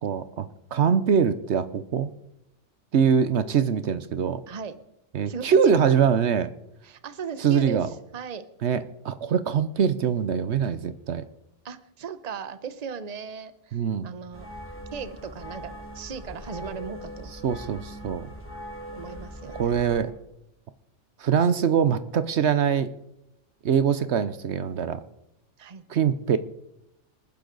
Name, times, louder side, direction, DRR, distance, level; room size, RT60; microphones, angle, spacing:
voice 1, 0.0-2.1 2.9-4.4 5.1-6.5 7.4-7.9 8.6-11.2 13.7-14.1 17.4-18.3 19.6-20.1 21.2-22.9 23.6-25.0 25.9-26.4, right 7 dB, 70° right, 13 dB, 1.0 m, -23 dB
voice 2, 4.5-4.8 5.3-5.7 6.8-8.5 11.6-14.5 14.9-17.3 18.9-19.7 25.6-25.8, right 6 dB, 35° right, 12 dB, 0.9 m, -37 dB
sound 1, 14.3-20.0, equal, 10° left, 2.5 m, -40 dB
27.5 x 10.0 x 3.9 m, 0.83 s
omnidirectional pair, 1.2 m